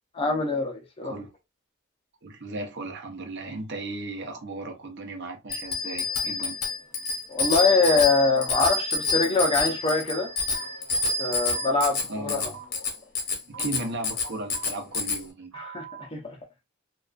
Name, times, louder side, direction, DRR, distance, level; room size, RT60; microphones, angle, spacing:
voice 1, 0.1-1.2 7.3-10.3 11.2-12.5 13.6-13.7 15.5-16.4, left 3 dB, 25° left, 0.5 m, -24 dB
voice 2, 2.2-6.6 12.1-12.6 13.5-15.5, right 2 dB, 55° right, 0.6 m, -36 dB
Bicycle bell, 5.5-15.2, left 3 dB, 50° left, 0.9 m, -28 dB
sound 1, 10.5-10.7 11.5-11.7 12.5-12.7 13.5-13.7 14.5-14.7 15.5-16.1, right 9 dB, 85° right, 1.0 m, -42 dB
2.3 x 2.3 x 2.3 m
head